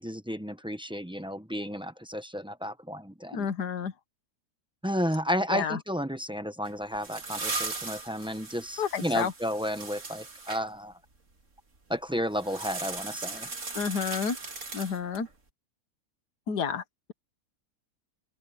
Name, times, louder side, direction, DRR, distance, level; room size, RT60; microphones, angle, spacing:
voice 1, 0.0-3.5 4.8-10.9 11.9-13.5, equal, 5° right, 0.6 m, -32 dB
voice 2, 3.3-3.9 5.5-5.8 8.8-9.3 13.8-14.4 14.7-15.3 16.5-16.8, left 6 dB, 90° left, 1.8 m, -30 dB
sound 1, 6.6-10.6 12.4-15.3, right 3 dB, 50° right, 2.8 m, -38 dB
open air
omnidirectional pair, 1.7 m